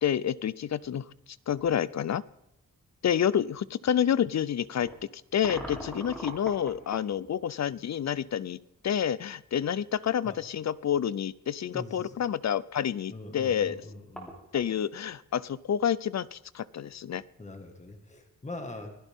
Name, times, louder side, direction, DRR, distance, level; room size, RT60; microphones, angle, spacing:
voice 1, 0.0-1.0 1.5-2.2 3.0-4.9 5.3-8.6 8.8-13.8 14.5-17.2, left 9 dB, 55° left, 19 dB, 0.5 m, -28 dB
sound 1, 1.6-1.8 2.6-2.7 4.7-7.1 9.6-9.7 10.0-10.1 13.5-13.6 13.8-14.7, equal, 5° left, 3.3 m, -42 dB
voice 2, 11.7-12.2 13.1-14.4 17.4-19.0, left 2 dB, 20° left, 4 dB, 1.8 m, -42 dB
24.5 x 16.0 x 3.7 m, 0.80 s
wide cardioid pair, 170°, 33 cm